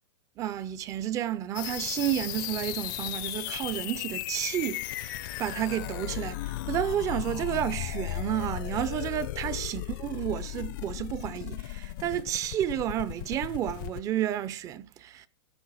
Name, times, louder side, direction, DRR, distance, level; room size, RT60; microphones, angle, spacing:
voice 1, 0.4-15.3, right 11 dB, 20° right, 0.6 m, -31 dB
sound 1, 1.5-14.0, left 17 dB, 45° left, 0.7 m, -36 dB
15.0 x 6.6 x 6.3 m
supercardioid pair, 160°, 15 cm